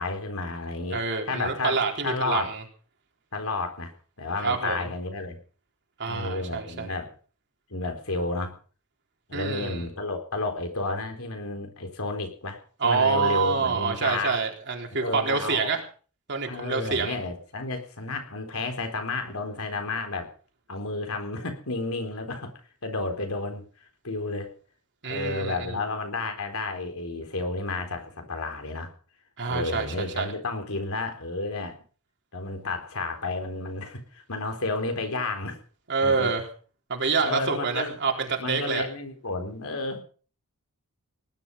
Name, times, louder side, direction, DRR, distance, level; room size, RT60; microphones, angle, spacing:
voice 1, 0.0-1.0 1.3-1.7 2.0-2.5 3.3-3.9 4.2-5.4 6.1-7.1 7.7-8.5 9.3-14.4 14.9-15.7 16.5-20.3 20.7-22.5 22.8-23.6 24.0-24.5 25.0-28.9 29.5-31.8 32.3-35.6 36.0-36.3 37.2-37.9 38.4-40.0, left 3 dB, 65° left, 5 dB, 4.0 m, -31 dB
voice 2, 0.9-2.6 4.4-4.9 6.0-6.9 9.3-9.9 12.8-15.8 16.3-17.2 25.0-25.9 29.4-30.3 35.9-36.4 36.9-38.8, right 4 dB, 55° right, 3 dB, 3.9 m, -27 dB
19.0 x 12.0 x 5.5 m, 0.41 s
head